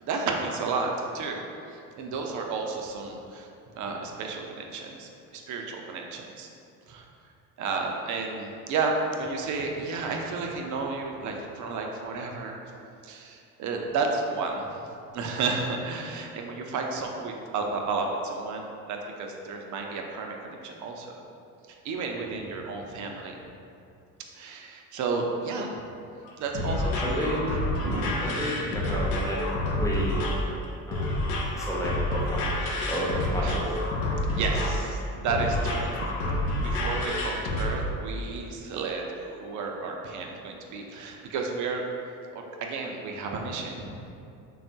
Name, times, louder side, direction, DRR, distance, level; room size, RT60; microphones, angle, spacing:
voice 1, 0.0-1.4 1.7-3.5 3.7-6.5 6.9-7.1 7.6-12.6 13.0-14.8 15.1-21.2 21.7-23.4 24.4-25.7 26.4-27.3 27.8-28.6 33.4-33.6 34.0-41.8 42.3-44.1, right 4 dB, 45° right, 1 dB, 0.5 m, -32 dB
sound 1, 26.2-37.7, left 1 dB, 80° left, 0.5 m, -28 dB
voice 2, 27.0-27.4 28.2-29.4 29.8-30.2 30.9-33.6, equal, 10° left, -5 dB, 0.7 m, -32 dB
3.4 x 2.3 x 2.6 m, 2.6 s
hypercardioid pair, 60°, 41 cm